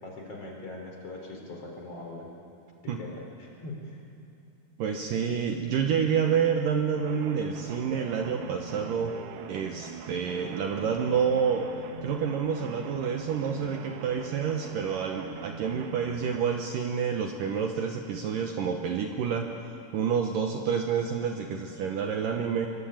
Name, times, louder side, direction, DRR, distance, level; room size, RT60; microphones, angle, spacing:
voice 1, 0.0-2.2 2.8-4.0, left 2 dB, 35° left, 0 dB, 4.7 m, -41 dB
voice 2, 4.8-9.1 9.5-11.7 12.0-19.5 19.9-22.7, right 7 dB, 65° right, 3 dB, 2.4 m, -28 dB
sound 1, 7.0-16.4, right 8 dB, 85° right, 3.3 m, -43 dB
24.5 x 23.0 x 8.9 m, 2.6 s
omnidirectional pair, 4.8 m